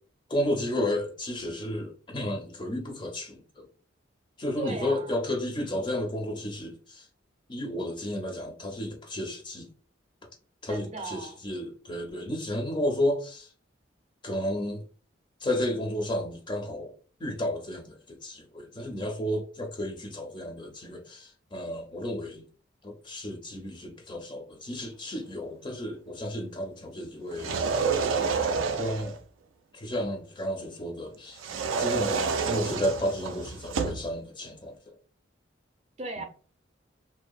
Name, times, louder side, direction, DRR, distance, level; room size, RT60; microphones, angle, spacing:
voice 1, 0.3-3.7 4.4-7.1 7.5-9.7 10.6-13.5 14.2-14.8 15.4-16.9 17.2-22.4 22.8-27.8 28.1-29.2 29.7-31.4 31.8-35.0, left 1 dB, 25° left, 0.4 m, -32 dB
voice 2, 4.6-5.2 10.7-11.4 36.0-36.2, right 2 dB, 35° right, 0.5 m, -37 dB
sound 1, 27.3-29.2 31.4-34.1, right 5 dB, 85° right, 0.4 m, -29 dB
2.6 x 2.0 x 2.3 m
head